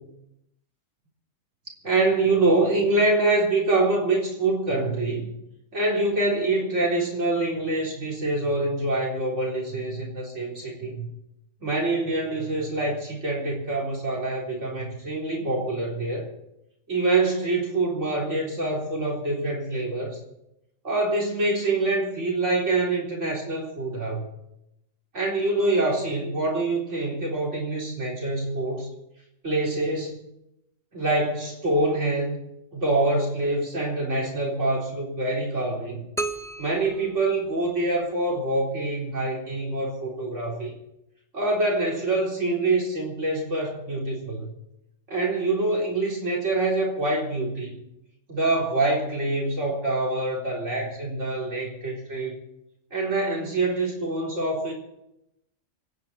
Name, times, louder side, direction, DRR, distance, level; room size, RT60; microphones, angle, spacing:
voice 1, 1.8-5.3 5.7-11.1 11.6-16.3 16.9-20.2 20.8-24.3 25.1-28.9 29.4-30.2 30.9-32.4 32.7-36.1 36.6-40.7 41.3-44.5 45.1-47.8 48.3-52.4 52.9-54.7, right 2 dB, 65° right, -3 dB, 4.2 m, -25 dB
sound 1, 36.2-38.1, right 2 dB, 5° left, 0.4 m, -34 dB
26.0 x 9.5 x 4.4 m, 0.84 s
omnidirectional pair, 1.3 m